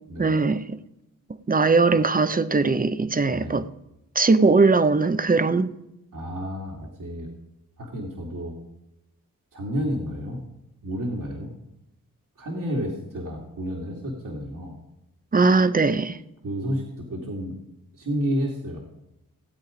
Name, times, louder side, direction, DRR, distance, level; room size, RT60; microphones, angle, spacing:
voice 1, 0.2-0.8 1.5-3.6 4.1-5.8 15.3-16.2, right 3 dB, 25° right, 0.8 m, -20 dB
voice 2, 3.3-3.6 6.1-7.3 7.8-8.5 9.5-10.4 10.8-11.5 12.4-14.8 16.4-17.5 18.0-18.8, equal, 65° right, 2.6 m, -30 dB
17.0 x 8.1 x 5.2 m
cardioid pair, 50°, 35 cm